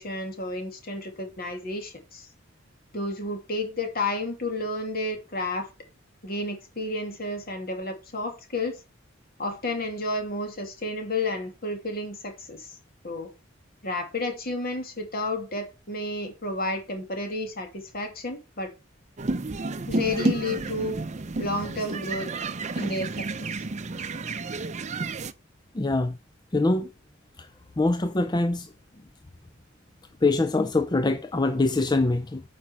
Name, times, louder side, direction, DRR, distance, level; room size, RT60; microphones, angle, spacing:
voice 1, 0.0-2.3 2.9-5.7 6.2-8.8 9.4-12.8 13.0-13.3 13.8-18.7 19.9-21.0 21.4-22.3 22.7-23.6, left 2 dB, 50° left, 2.7 m, -31 dB
sound 1, 19.2-25.3, right 3 dB, 35° right, 0.6 m, -31 dB
voice 2, 25.7-26.2 26.5-26.9 27.4-27.5 27.8-28.7 30.2-32.4, left 2 dB, 20° left, 0.5 m, -24 dB
8.8 x 5.4 x 6.0 m
head